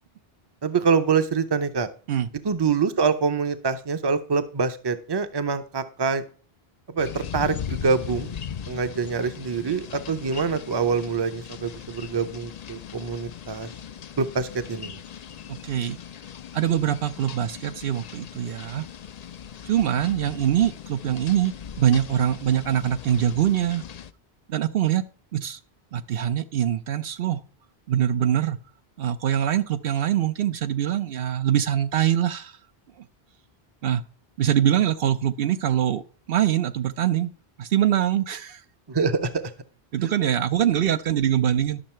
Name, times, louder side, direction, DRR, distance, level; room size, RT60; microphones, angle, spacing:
voice 1, 0.6-1.9 2.4-6.2 6.9-8.3 8.7-13.7 14.2-15.0 38.9-39.5, right 5 dB, 30° right, 11 dB, 0.7 m, -25 dB
sound 1, 7.0-24.1, left 8 dB, 50° left, 0.5 m, -39 dB
voice 2, 15.5-16.0 16.5-18.8 19.6-23.8 24.5-25.0 25.3-25.6 25.9-27.4 27.9-28.6 29.0-32.6 33.0-33.1 33.8-34.0 34.4-36.0 36.3-37.3 37.6-38.6 39.9-41.8, right 10 dB, 70° right, 11 dB, 0.8 m, -23 dB
11.5 x 6.5 x 4.4 m, 0.40 s
omnidirectional pair, 1.0 m